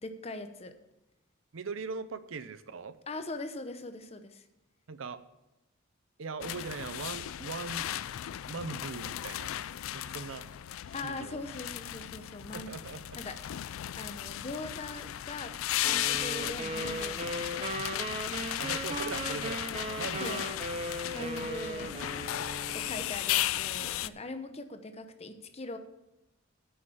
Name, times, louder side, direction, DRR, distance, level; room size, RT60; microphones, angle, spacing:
voice 1, 0.0-0.7 3.1-4.5 10.9-12.7 13.1-13.4 14.0-15.5 15.8-17.7 20.2-20.5 21.1-22.0 22.7-25.8, left 2 dB, 30° left, 9 dB, 0.8 m, -41 dB
voice 2, 1.5-3.0 4.9-5.2 6.2-7.9 8.5-9.5 9.9-10.5 11.0-11.4 12.5-13.2 16.4-16.6 18.6-19.6 19.9-20.4 21.1-21.3, right 4 dB, 75° right, 13 dB, 0.6 m, -40 dB
sound 1, 6.4-24.1, left 12 dB, 90° left, 0.4 m, -35 dB
sound 2, 15.8-23.0, right 2 dB, 30° right, 0.7 m, -38 dB
9.0 x 6.5 x 7.0 m, 0.93 s
head